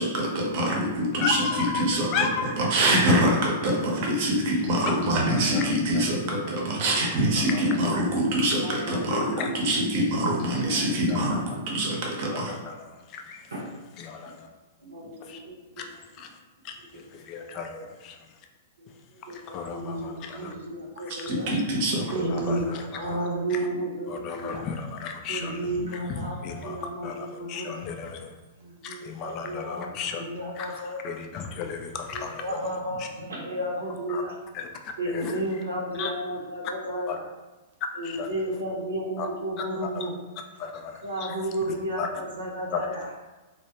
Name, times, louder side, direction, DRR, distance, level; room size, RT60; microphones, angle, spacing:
voice 1, 0.0-2.1 2.4-12.5 21.3-22.0, right 1 dB, 50° right, -1 dB, 0.7 m, -25 dB
voice 2, 1.1-2.5 3.6-3.7 4.8-5.0 5.3-6.1 7.3-7.9 8.9-9.5 10.9-11.4 12.3-13.0 14.0-14.2 15.2-15.4 15.8-15.9 16.2-16.3 16.6-17.7 18.0-18.2 19.3-20.5 21.1-21.3 22.2-22.8 23.1-23.2 24.1-25.7 26.1-26.8 27.0-28.3 28.8-30.2 30.6-30.7 31.0-32.4 34.1-34.2 34.5-35.3 36.0-36.1 37.1-37.2 38.0-38.3 39.2-39.3 39.9-40.1 40.6-40.9 41.2-41.3 42.0-42.1 42.7-42.9, left 6 dB, 40° left, 4 dB, 0.4 m, -34 dB
voice 3, 8.6-10.9 13.5-13.6 14.8-15.9 16.9-17.0 17.3-17.9 19.3-21.5 22.1-24.7 25.3-27.8 28.6-31.1 32.1-34.3 35.0-37.3 38.0-40.1 41.0-43.1, right 1 dB, 90° right, -3 dB, 0.6 m, -33 dB
2.2 x 2.0 x 2.8 m, 1.2 s
hypercardioid pair, 120°, 0 cm